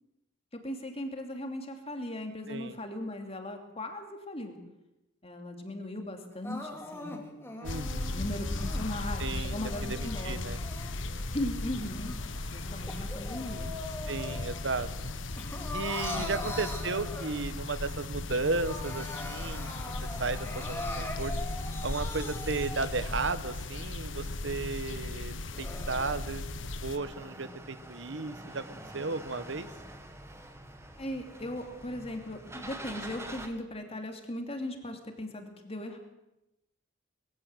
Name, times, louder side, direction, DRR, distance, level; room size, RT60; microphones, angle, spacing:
voice 1, 0.6-4.6 5.2-10.4 11.3-12.2 12.5-13.7 16.1-16.5 31.0-36.0, left 1 dB, 30° left, 5 dB, 2.8 m, -38 dB
Crying sobbing, 6.4-8.9 9.5-11.3 11.7-14.6 15.0-17.6 18.1-18.2 18.4-23.3 23.8-23.9 24.5-24.6 25.3-26.2, left 2 dB, 10° left, 2.6 m, -42 dB
sound 1, 7.6-27.0, left 2 dB, 70° left, 1.4 m, -36 dB
voice 2, 7.6-8.2 9.2-10.6 14.1-14.9 15.7-19.9 20.2-21.3 21.8-26.4 26.8-29.7, right 3 dB, 65° right, 13 dB, 1.2 m, -34 dB
sound 2, 27.0-33.5, right 1 dB, 15° right, 1.8 m, -46 dB
21.5 x 15.5 x 7.9 m, 0.92 s
head